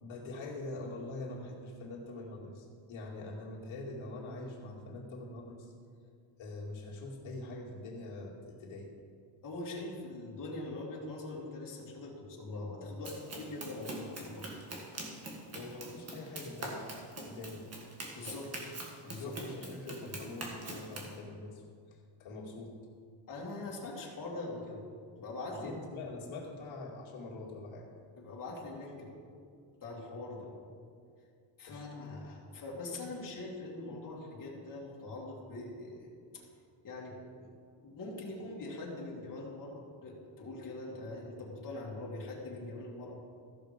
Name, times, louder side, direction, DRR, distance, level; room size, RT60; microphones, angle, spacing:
voice 1, 0.0-5.7 6.4-8.9 15.5-16.8 17.2-17.7 19.2-22.8 25.5-27.9 31.7-31.8, left 2 dB, 70° left, -2 dB, 2.4 m, -44 dB
voice 2, 9.4-14.5 18.1-18.7 19.0-19.3 19.8-20.2 23.3-24.8 25.1-25.7 28.2-29.2 29.8-30.5 31.6-36.5 36.8-37.5 37.8-43.1, left 2 dB, 40° left, -4 dB, 2.6 m, -43 dB
Run, 13.0-21.2, right 2 dB, 30° right, 1.8 m, -44 dB
14.5 x 6.3 x 5.1 m, 2.2 s
cardioid pair, 125°, 50 cm